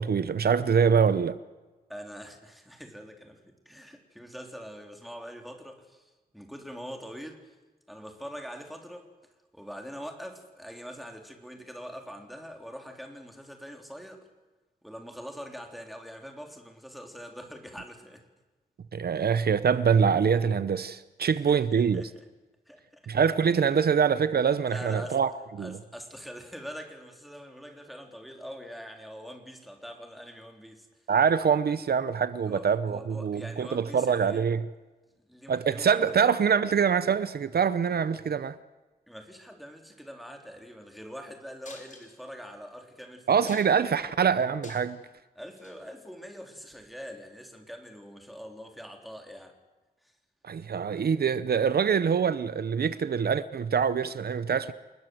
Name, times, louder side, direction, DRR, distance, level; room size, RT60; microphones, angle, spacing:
voice 1, 0.0-1.4 18.9-22.1 23.1-25.3 25.6-25.8 31.1-34.7 35.5-38.6 43.3-45.0 50.4-54.7, right 6 dB, 70° right, 0.8 m, -24 dB
voice 2, 1.9-7.6 7.9-9.1 9.5-14.3 14.8-18.2 21.2-22.2 22.7-23.0 24.7-25.2 25.6-30.9 32.4-34.4 35.3-36.2 39.1-44.1 45.4-49.6 50.0-50.1, equal, ahead, 3.6 m, -44 dB
sound 1, 41.6-42.4 42.9-43.0 43.3-44.0 44.4-45.0 45.6-45.8 46.7-46.8, left 3 dB, 50° left, 4.9 m, -48 dB
28.5 x 20.5 x 7.9 m
wide cardioid pair, 140°, 17 cm